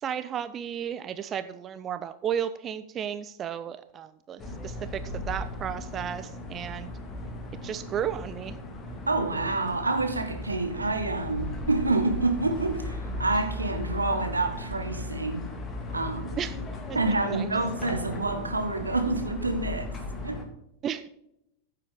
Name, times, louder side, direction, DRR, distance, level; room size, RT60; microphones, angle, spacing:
voice 1, 0.0-6.9 7.6-8.6 16.4-16.6 16.9-17.0 17.3-17.5 20.8-21.1, right 9 dB, 25° right, 0.5 m, -33 dB
sound 1, 4.4-20.4, left 1 dB, 20° left, 2.1 m, -37 dB
voice 2, 9.1-15.5 15.9-16.4 16.9-19.9 20.2-20.4, right 2 dB, 80° right, 1.6 m, -28 dB
14.5 x 7.6 x 3.8 m
figure-of-eight pair, 90°, 0 cm